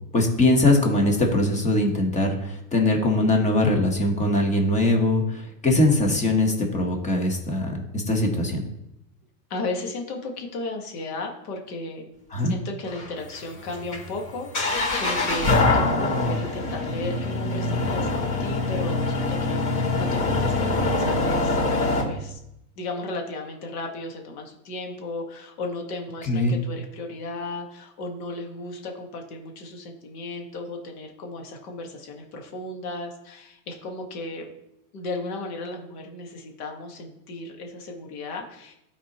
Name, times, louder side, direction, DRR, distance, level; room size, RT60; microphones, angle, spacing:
voice 1, 0.1-8.6 12.3-12.5 26.3-26.6, left 2 dB, 15° left, 2 dB, 1.2 m, -21 dB
voice 2, 9.5-12.1 12.4-21.6 22.0-22.4 22.8-34.5 34.9-38.8, left 2 dB, 65° left, 2 dB, 1.7 m, -35 dB
sound 1, 12.9-22.0, left 2 dB, 35° left, 2.8 m, -24 dB
12.5 x 4.2 x 3.0 m, 0.82 s
supercardioid pair, 140°, 48 cm